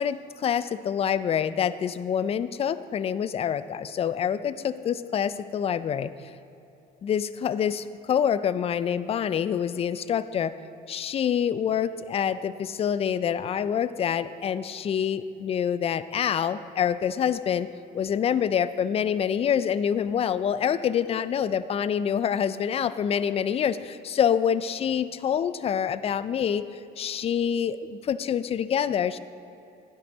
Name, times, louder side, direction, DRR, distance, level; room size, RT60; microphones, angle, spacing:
voice 1, 0.0-6.1 7.0-10.5 10.9-26.6 27.0-29.2, left 8 dB, 35° left, 15 dB, 0.4 m, -26 dB
11.0 x 10.0 x 4.0 m, 2.9 s
cardioid pair, 110°, 17 cm